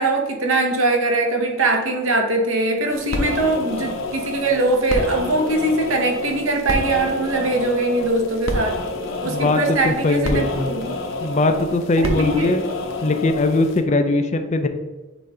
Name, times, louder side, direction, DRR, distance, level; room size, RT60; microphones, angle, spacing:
voice 1, 0.0-8.8 9.2-11.0 12.0-12.6, right 2 dB, 75° right, 1.0 m, -21 dB
sound 1, 2.9-13.8, left 2 dB, 70° left, 0.9 m, -28 dB
voice 2, 9.2-10.7 11.2-12.6 13.0-14.7, left 2 dB, 35° left, 0.4 m, -20 dB
7.8 x 2.7 x 4.9 m
head